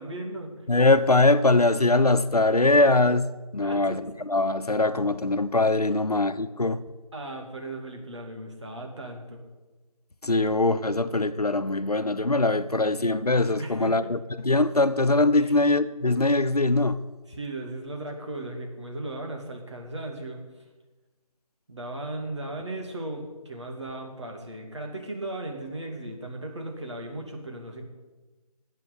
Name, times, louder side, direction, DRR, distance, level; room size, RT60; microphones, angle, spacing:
voice 1, 0.0-0.6 3.6-4.0 6.0-6.1 7.1-9.4 13.6-14.1 15.4-15.7 17.3-20.4 21.7-27.9, right 2 dB, 50° right, 2.6 m, -36 dB
voice 2, 0.7-6.8 10.2-17.0, left 2 dB, 85° left, 0.9 m, -22 dB
11.0 x 8.4 x 8.3 m
figure-of-eight pair, 165°, 19 cm